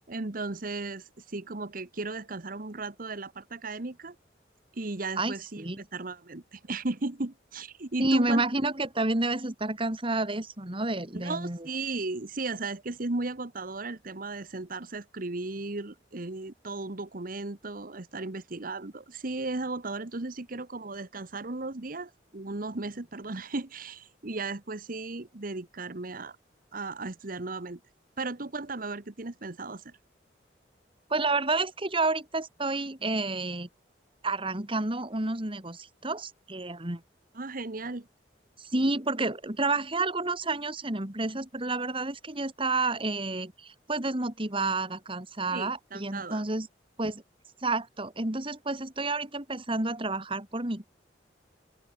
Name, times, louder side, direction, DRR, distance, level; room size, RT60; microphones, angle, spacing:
voice 1, 0.1-4.2 4.7-8.4 11.1-26.4 26.7-27.8 28.2-29.9 37.3-38.1 45.5-46.5, right 3 dB, 50° right, 1.3 m, -36 dB
voice 2, 5.2-5.8 8.0-11.6 31.1-33.7 34.2-37.0 38.6-46.7 47.0-47.2 47.6-50.9, right 2 dB, 30° right, 2.6 m, -30 dB
open air
head